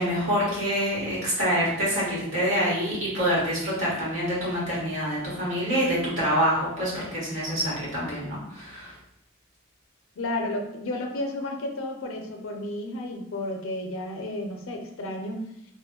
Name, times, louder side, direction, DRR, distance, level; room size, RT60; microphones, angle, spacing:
voice 1, 0.0-8.9, equal, 80° right, -7 dB, 1.3 m, -26 dB
voice 2, 10.2-15.4, left 1 dB, 90° left, 2 dB, 0.5 m, -32 dB
3.0 x 2.1 x 2.2 m, 0.79 s
head